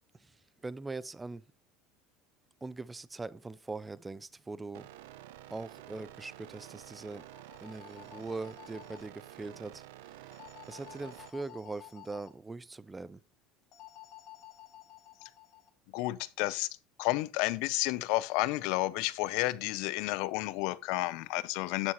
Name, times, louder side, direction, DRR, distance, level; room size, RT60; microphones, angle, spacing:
voice 1, 0.1-1.4 2.6-4.9 5.5-7.3 7.6-10.4 10.7-13.2, right 3 dB, 15° right, 0.3 m, -42 dB
sound 1, 4.7-11.3, right 13 dB, 90° right, 0.6 m, -50 dB
sound 2, 7.1-9.1 10.3-12.3 13.7-15.7, left 13 dB, 50° left, 1.9 m, -53 dB
voice 2, 15.9-16.7 17.0-21.9, left 20 dB, 70° left, 0.5 m, -31 dB
8.8 x 7.0 x 3.0 m
supercardioid pair, 125°, 0 cm